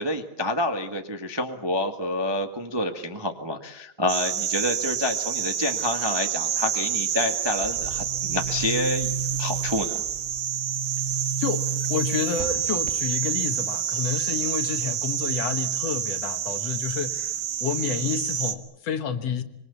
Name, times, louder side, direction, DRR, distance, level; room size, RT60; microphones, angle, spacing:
voice 1, 0.0-9.1 9.4-10.0, left 1 dB, 15° right, 5 dB, 1.0 m, -28 dB
sound 1, 4.1-18.6, right 9 dB, 75° right, 2.8 m, -28 dB
Boom, 7.6-13.4, right 5 dB, 50° right, 0.9 m, -33 dB
voice 2, 11.4-19.4, left 7 dB, 65° left, 9 dB, 2.4 m, -29 dB
25.5 x 23.5 x 8.2 m, 0.81 s
omnidirectional pair, 3.3 m